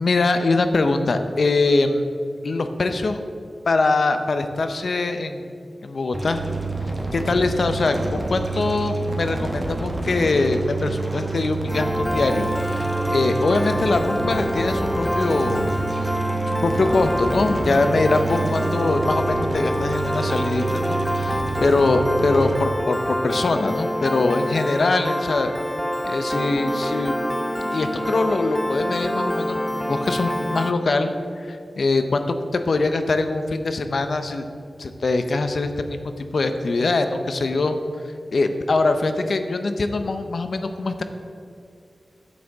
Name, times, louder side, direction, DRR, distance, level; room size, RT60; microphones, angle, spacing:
voice 1, 0.0-2.1 2.4-3.2 3.7-5.5 5.8-6.4 7.1-15.7 16.5-25.5 26.0-27.2 27.7-34.4 34.8-37.8 38.3-41.0, left 3 dB, 65° left, 8 dB, 0.6 m, -23 dB
sound 1, 6.1-22.6, right 3 dB, 25° right, 1.1 m, -28 dB
Piano, 11.7-30.7, equal, 5° left, 0.4 m, -26 dB
9.4 x 7.8 x 3.5 m, 2.4 s
wide cardioid pair, 100°, 0 cm